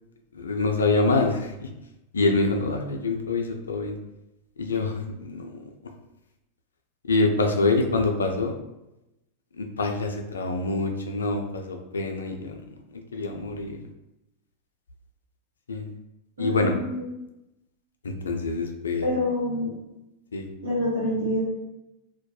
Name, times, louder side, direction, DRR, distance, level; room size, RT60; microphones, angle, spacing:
voice 1, 0.3-1.7 2.1-4.0 4.6-5.6 7.1-8.5 9.6-12.6 12.9-13.8 15.7-15.9 16.4-16.7 18.0-19.1 20.3-20.5, left 3 dB, 80° left, 3 dB, 0.4 m, -25 dB
voice 2, 16.4-17.0 19.0-19.8 20.6-21.4, left 1 dB, 80° right, -7 dB, 1.2 m, -27 dB
2.3 x 2.1 x 2.7 m, 0.92 s
figure-of-eight pair, 90°, 0 cm